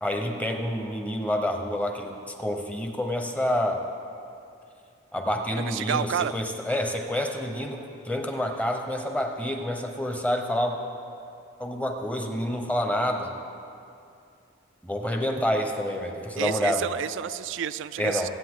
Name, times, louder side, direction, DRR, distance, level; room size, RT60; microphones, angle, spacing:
voice 1, 0.0-3.8 5.1-10.8 11.6-13.3 14.8-16.9 18.0-18.3, left 1 dB, 5° left, 4 dB, 0.9 m, -28 dB
voice 2, 5.6-6.3 16.4-18.3, right 9 dB, 65° right, 16 dB, 0.3 m, -30 dB
22.5 x 8.4 x 3.7 m, 2.5 s
head